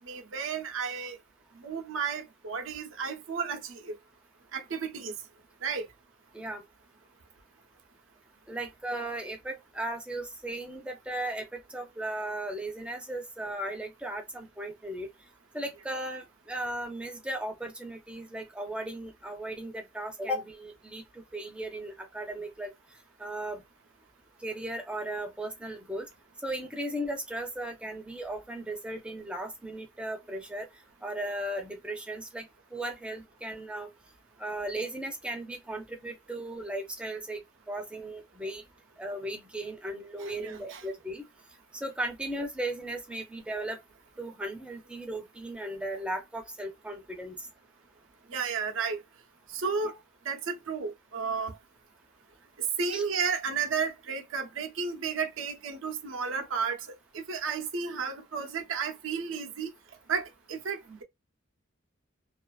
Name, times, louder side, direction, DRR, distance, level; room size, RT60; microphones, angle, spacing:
voice 1, 0.0-1.2 1.6-4.0 4.5-5.1 5.6-5.9 40.2-40.8 48.3-49.0 49.5-50.0 50.3-51.6 52.8-56.8 57.1-59.7 60.1-61.0, right 5 dB, 75° right, 0.6 m, -33 dB
voice 2, 8.5-15.1 15.5-22.7 23.2-23.6 24.4-26.1 26.4-30.7 31.0-33.9 34.4-37.4 37.7-38.6 39.0-41.2 41.7-43.8 44.2-47.4 52.9-53.0, right 1 dB, 5° right, 0.6 m, -36 dB
2.4 x 2.4 x 2.3 m
head